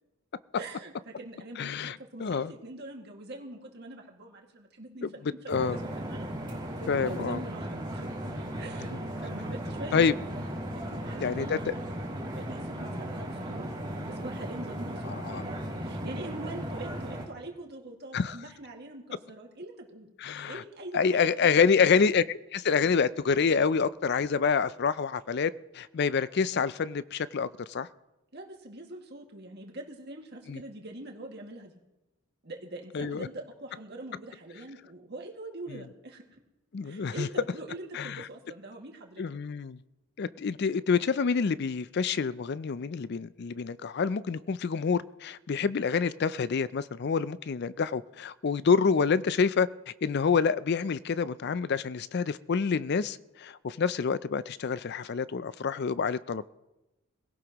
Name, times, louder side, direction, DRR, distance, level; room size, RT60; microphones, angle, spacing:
voice 1, 0.5-6.3 6.7-8.1 8.6-10.3 10.7-11.8 12.3-13.7 14.1-20.1 20.5-21.5 28.3-31.7 32.4-36.3 36.8-39.2, right 2 dB, 50° right, 2.1 m, -43 dB
voice 2, 1.6-1.9 2.2-2.5 5.0-5.1 5.5-5.8 6.9-7.4 9.9-10.1 11.2-11.7 15.1-15.4 18.1-18.4 20.2-20.5 20.9-27.9 30.5-30.6 32.9-33.3 36.7-37.3 37.9-38.2 39.2-39.8 40.2-49.7 50.0-56.4, left 5 dB, 50° left, 0.4 m, -27 dB
sound 1, 5.5-17.2, equal, 20° right, 2.9 m, -36 dB
19.5 x 17.0 x 3.0 m
head